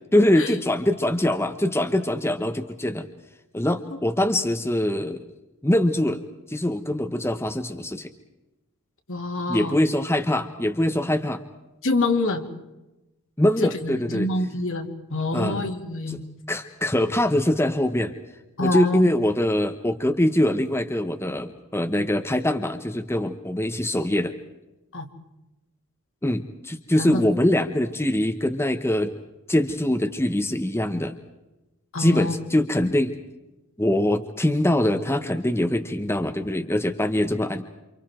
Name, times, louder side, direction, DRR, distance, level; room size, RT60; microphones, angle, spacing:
voice 1, 0.1-3.1 3.5-5.2 5.6-6.2 6.5-8.1 9.5-11.4 13.4-14.3 15.3-15.6 16.1-16.2 16.5-18.1 18.6-24.3 26.2-29.2 29.5-31.2 32.0-33.2 33.8-37.6, left 1 dB, 10° left, 6 dB, 1.2 m, -23 dB
voice 2, 9.1-9.8 11.8-12.4 13.6-16.2 18.6-19.0 24.9-25.1 26.9-27.3 31.9-32.3, left 2 dB, 65° left, 4 dB, 2.8 m, -26 dB
29.0 x 27.5 x 4.6 m, 1.0 s
head